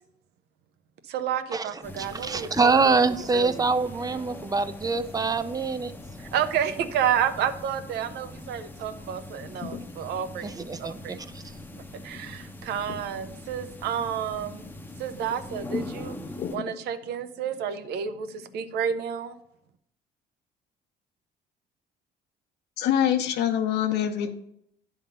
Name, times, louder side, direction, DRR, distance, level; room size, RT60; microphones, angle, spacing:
voice 1, 1.1-2.7 3.3-3.6 6.2-11.2 12.0-14.7 15.0-16.1 16.5-19.4, right 8 dB, 75° right, 0.8 m, -30 dB
sound 1, 1.8-16.6, left 1 dB, 10° left, 0.7 m, -42 dB
voice 2, 2.0-5.9 10.4-11.2, right 4 dB, 20° right, 0.5 m, -25 dB
sound 2, 9.2-18.9, left 8 dB, 55° left, 0.6 m, -44 dB
voice 3, 22.8-24.3, left 10 dB, 80° left, 1.0 m, -24 dB
9.8 x 3.7 x 6.6 m
cardioid pair, 110°, 17 cm